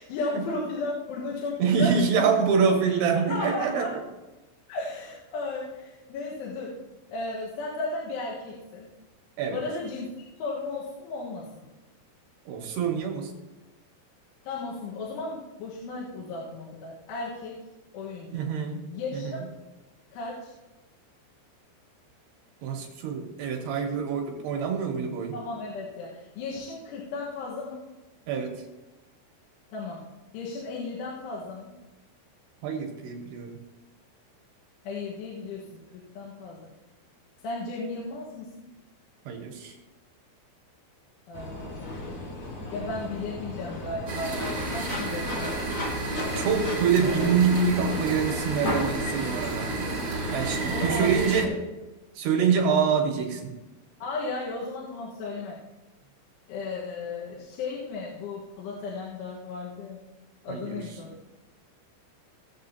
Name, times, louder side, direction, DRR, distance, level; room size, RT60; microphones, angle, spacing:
voice 1, 0.0-2.2 2.9-3.9 4.7-6.8 7.1-8.9 9.5-10.1 10.4-11.6 14.5-17.5 17.9-18.4 18.9-19.5 20.1-20.5 25.3-27.8 29.7-30.0 30.3-31.8 34.8-35.7 35.9-36.6 37.4-38.5 41.3-41.9 42.7-45.6 50.7-51.5 54.0-55.6 56.5-60.0 60.4-61.1, left 3 dB, 85° left, -5 dB, 3.8 m, -35 dB
voice 2, 1.6-4.0 9.4-9.6 12.5-13.3 18.3-18.9 19.1-19.3 22.6-25.4 28.3-28.6 32.6-33.6 39.3-39.7 46.4-49.7 50.3-51.5 52.2-53.5 60.5-60.8, right 6 dB, 70° right, 2 dB, 2.9 m, -25 dB
sound 1, 41.3-50.9, left 2 dB, 60° left, 1.9 m, -35 dB
sound 2, 44.1-51.5, right 3 dB, 55° right, 1.4 m, -32 dB
18.5 x 7.4 x 2.8 m, 1.1 s
omnidirectional pair, 5.6 m